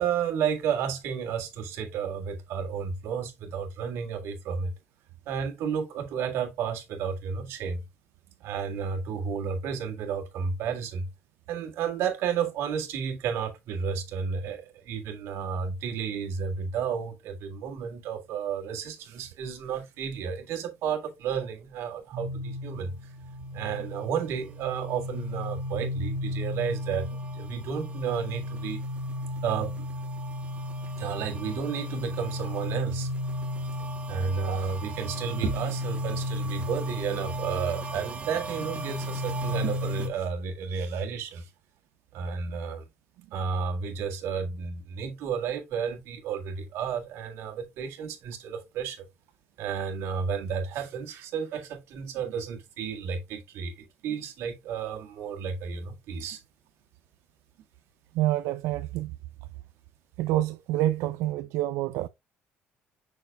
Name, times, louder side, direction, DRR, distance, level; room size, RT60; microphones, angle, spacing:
voice 1, 0.0-4.7 5.3-7.8 8.4-11.1 11.5-22.9 23.5-28.8 29.4-29.9 31.0-33.1 34.1-41.5 42.1-42.8 43.3-49.1 49.6-56.4, right 6 dB, 65° right, 1.8 m, -32 dB
sound 1, 22.1-40.1, left 1 dB, 25° right, 1.1 m, -34 dB
voice 2, 58.1-59.2 60.2-62.1, right 15 dB, 90° right, 0.4 m, -27 dB
6.8 x 6.3 x 2.3 m
cardioid pair, 175°, 5 cm